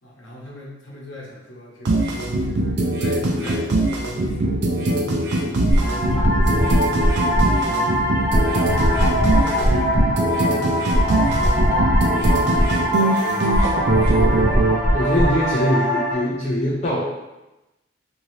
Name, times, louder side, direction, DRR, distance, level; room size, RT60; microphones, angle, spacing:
voice 1, 0.0-2.1 2.4-5.4 5.7-8.9 9.3-13.6 14.0-14.7, equal, 85° left, -4 dB, 1.0 m, -41 dB
sound 1, 1.8-14.8, right 1 dB, 65° right, 0.5 m, -22 dB
sound 2, 5.7-16.1, equal, 40° right, 1.0 m, -20 dB
voice 2, 14.9-17.0, equal, 40° left, -7 dB, 0.5 m, -22 dB
2.8 x 2.7 x 3.1 m, 1.0 s
head